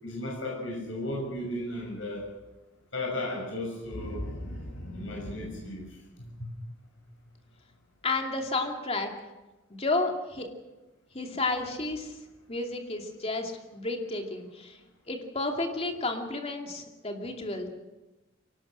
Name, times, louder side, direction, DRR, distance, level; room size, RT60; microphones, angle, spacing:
voice 1, 0.0-2.3 2.9-6.5, left 1 dB, 85° left, -2 dB, 6.4 m, -35 dB
voice 2, 8.0-9.1 9.7-10.5 11.1-12.1 12.5-14.8 15.1-17.7, left 2 dB, 30° left, 3 dB, 2.6 m, -31 dB
23.5 x 18.0 x 6.5 m, 1.1 s
head